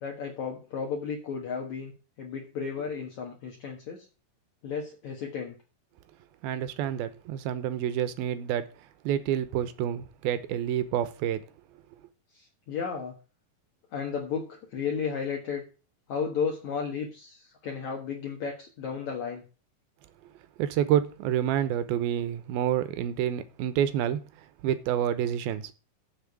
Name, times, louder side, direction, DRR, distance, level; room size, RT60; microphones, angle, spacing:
voice 1, 0.0-1.9 2.2-4.1 4.6-5.5 12.3-13.2 13.9-15.6 16.1-19.4, left 6 dB, 60° left, 2.3 m, -33 dB
voice 2, 6.4-8.6 9.0-11.4 20.6-24.2 24.6-25.7, right 10 dB, 80° right, 2.7 m, -28 dB
7.3 x 6.9 x 8.1 m
omnidirectional pair, 4.4 m